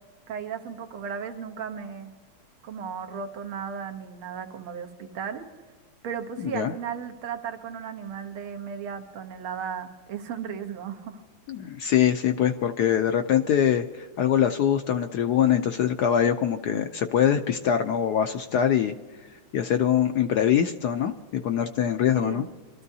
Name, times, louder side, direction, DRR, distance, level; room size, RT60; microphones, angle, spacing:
voice 1, 0.3-2.1 2.6-5.5 6.0-11.2 22.1-22.4, right 7 dB, 85° right, 5 dB, 2.0 m, -35 dB
voice 2, 6.4-6.7 11.5-18.9 19.5-22.4, left 9 dB, 70° left, 8 dB, 0.9 m, -23 dB
25.5 x 13.5 x 2.7 m, 1.3 s
omnidirectional pair, 2.3 m